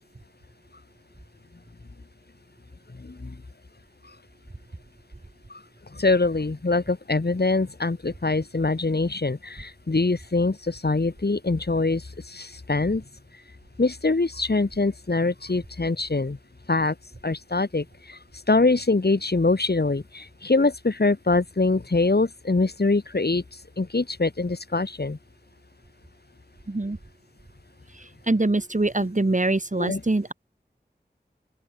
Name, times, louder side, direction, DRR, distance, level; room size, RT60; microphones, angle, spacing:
voice 1, 3.0-3.4 5.9-13.0 13.8-16.4 16.7-16.9 17.2-18.2 18.5-23.4 23.8-25.2 29.8-30.0, left 3 dB, 60° left, 7.3 m, -24 dB
voice 2, 26.7-27.0 27.9-30.3, right 2 dB, 45° right, 7.5 m, -24 dB
open air
wide cardioid pair, 55°, 18 cm